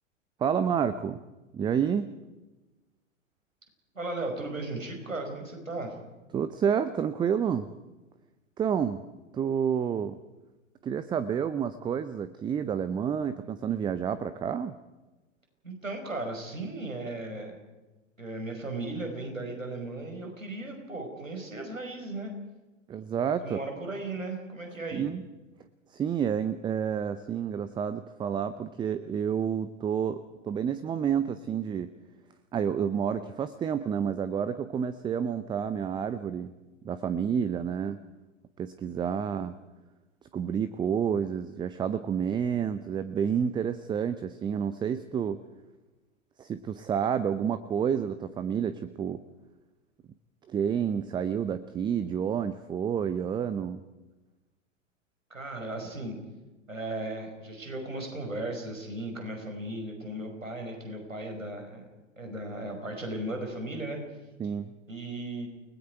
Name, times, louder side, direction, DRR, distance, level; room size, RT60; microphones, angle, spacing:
voice 1, 0.4-1.2 1.5-2.1 6.3-7.7 8.6-9.0 9.3-10.2 10.8-14.8 22.9-23.6 24.9-25.3 25.9-31.9 32.5-36.5 36.8-38.0 38.6-39.6 40.3-45.4 46.4-49.2 50.5-53.8 64.4-64.7, right 8 dB, 10° right, 13 dB, 0.6 m, -29 dB
voice 2, 3.9-5.9 15.6-17.6 18.2-22.3 23.4-25.1 55.3-56.2 56.7-61.8 62.2-64.0 64.9-65.5, right 2 dB, 85° right, 3 dB, 5.4 m, -36 dB
29.5 x 20.0 x 4.7 m, 1.1 s
figure-of-eight pair, 100°, 39 cm